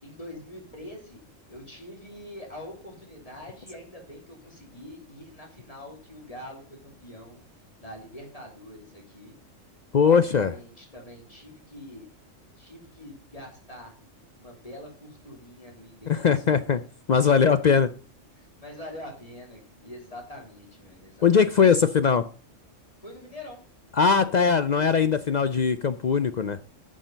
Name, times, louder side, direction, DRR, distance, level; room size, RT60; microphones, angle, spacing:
voice 1, 0.0-1.2 1.5-7.4 7.8-9.3 10.0-12.1 12.6-13.9 14.3-16.6 18.4-21.6 23.0-23.6 24.1-25.1, left 1 dB, 30° left, 3.0 m, -44 dB
voice 2, 9.9-10.5 16.1-16.8 17.1-17.9 21.2-22.3 23.9-26.6, left 6 dB, 60° left, 0.4 m, -20 dB
10.0 x 6.2 x 5.2 m
omnidirectional pair, 1.3 m